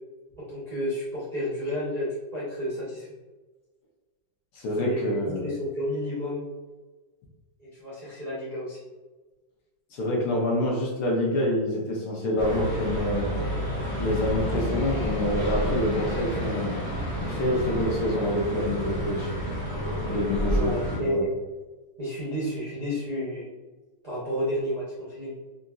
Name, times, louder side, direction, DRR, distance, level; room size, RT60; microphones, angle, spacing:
voice 1, 0.4-3.1 4.8-6.5 7.6-8.8 20.5-21.3 22.0-23.4 24.0-25.4, equal, 45° right, -10 dB, 0.5 m, -31 dB
voice 2, 4.6-5.5 9.9-13.3 14.0-16.8 17.2-19.3 20.1-21.2, left 1 dB, 70° left, -1 dB, 1.2 m, -27 dB
sound 1, 12.4-21.0, equal, 35° left, 0.3 m, -30 dB
3.8 x 2.5 x 2.3 m, 1.3 s
omnidirectional pair, 2.0 m